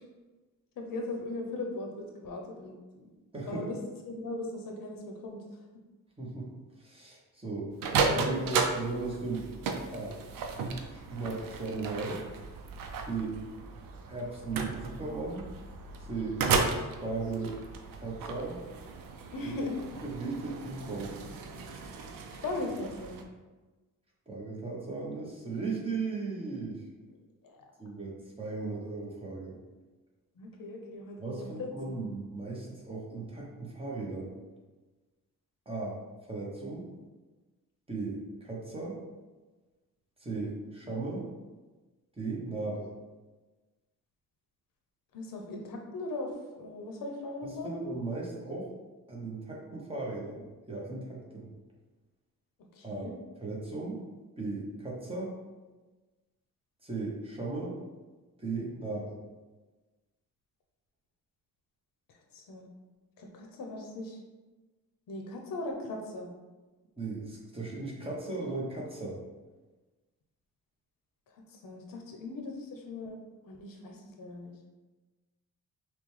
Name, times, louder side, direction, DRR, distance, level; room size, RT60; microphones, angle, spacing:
voice 1, 0.8-3.1 3.5-3.8 4.1-5.6 19.3-19.7 22.4-23.2 27.4-27.6 30.4-31.9 45.1-47.7 52.7-53.1 62.1-62.7 63.2-64.2 65.1-66.3 71.3-73.2 73.4-74.5, left 2 dB, 80° left, 1 dB, 0.8 m, -39 dB
voice 2, 3.3-3.7 6.2-6.5 6.8-7.7 8.1-9.5 9.9-10.2 10.9-12.2 13.1-13.4 14.1-15.5 16.1-16.4 17.0-17.6 18.0-18.6 20.0-21.1 24.3-26.8 27.8-29.6 31.2-34.4 35.7-36.9 37.9-39.0 40.2-41.3 42.2-42.9 47.6-48.7 49.1-51.5 52.8-53.1 53.4-54.0 54.4-55.3 56.8-57.8 58.4-59.2 67.0-69.2, right 3 dB, 15° right, -4 dB, 0.9 m, -36 dB
sound 1, 7.7-23.2, right 4 dB, 80° right, 0.6 m, -35 dB
5.7 x 2.2 x 3.2 m, 1.2 s
wide cardioid pair, 155°, 33 cm